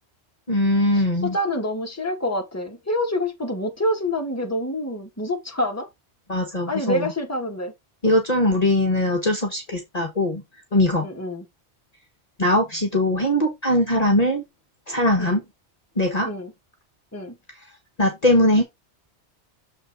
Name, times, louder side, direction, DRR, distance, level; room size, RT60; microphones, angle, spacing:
voice 1, 0.5-1.4 6.3-7.1 8.0-10.4 10.7-11.1 12.4-14.4 14.9-15.4 16.0-16.3 18.0-18.6, left 1 dB, 35° left, 1.4 m, -20 dB
voice 2, 1.3-5.9 6.7-7.7 11.0-11.4 15.2-15.4 16.2-16.5 17.1-17.3, left 1 dB, 15° left, 1.8 m, -27 dB
7.0 x 4.3 x 4.1 m
omnidirectional pair, 1.2 m